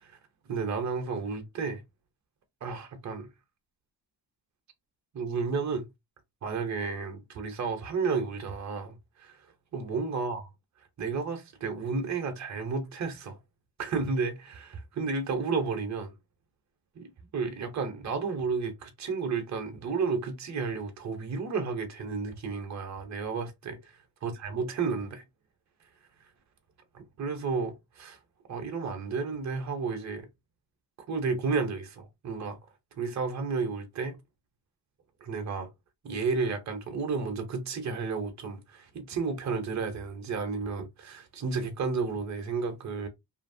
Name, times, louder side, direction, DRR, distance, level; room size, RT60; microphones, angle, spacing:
voice 1, 0.5-1.8 2.6-3.3 5.1-5.9 6.4-9.5 9.7-10.5 11.0-13.4 13.8-16.1 16.9-17.1 17.3-25.2 26.9-28.2 28.5-30.3 31.1-32.6 32.9-34.2 35.2-35.7 36.0-43.1, right 4 dB, 40° right, 0.7 m, -32 dB
2.8 x 2.5 x 2.6 m
wide cardioid pair, 155°, 42 cm